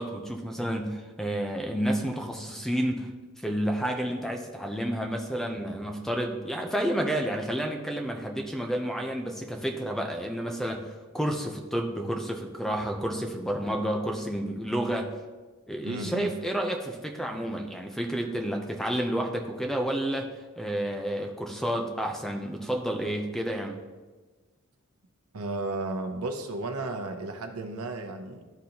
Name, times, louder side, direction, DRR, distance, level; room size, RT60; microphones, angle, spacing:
voice 1, 0.0-3.1 3.4-15.1 15.7-20.3 20.6-23.8, right 1 dB, ahead, 3 dB, 0.5 m, -30 dB
voice 2, 15.8-16.3 25.3-28.5, right 2 dB, 85° right, 5 dB, 0.8 m, -33 dB
11.5 x 3.9 x 2.9 m, 1.3 s
head